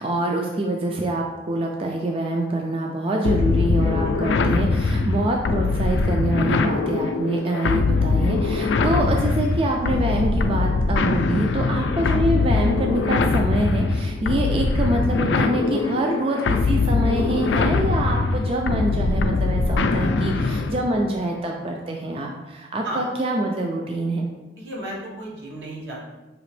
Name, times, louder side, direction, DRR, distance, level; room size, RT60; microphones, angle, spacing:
voice 1, 0.0-24.3, right 1 dB, 30° right, 1 dB, 0.3 m, -25 dB
sound 1, 3.2-20.9, left 3 dB, 80° left, 0.3 m, -22 dB
voice 2, 3.9-4.2 8.6-8.8 20.1-20.6 22.8-23.0 24.6-26.1, right 1 dB, 80° right, -3 dB, 1.2 m, -35 dB
5.0 x 2.9 x 3.2 m, 1.1 s
head